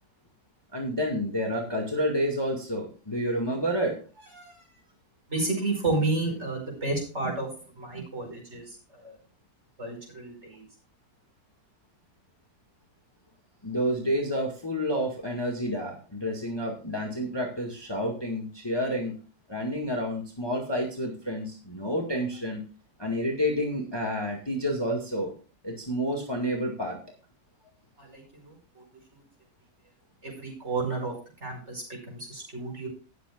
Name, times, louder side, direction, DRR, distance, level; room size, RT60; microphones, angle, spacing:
voice 1, 0.7-4.0 13.6-19.2 19.5-22.6 23.0-25.3 25.6-27.0, equal, 15° left, 1 dB, 1.8 m, -29 dB
voice 2, 5.3-7.5 7.8-9.1 9.8-10.6 28.0-28.8 29.1-29.2 30.2-31.1 31.4-32.9, right 2 dB, 40° right, 0 dB, 5.5 m, -31 dB
19.0 x 7.7 x 2.4 m, 0.37 s
omnidirectional pair, 1.8 m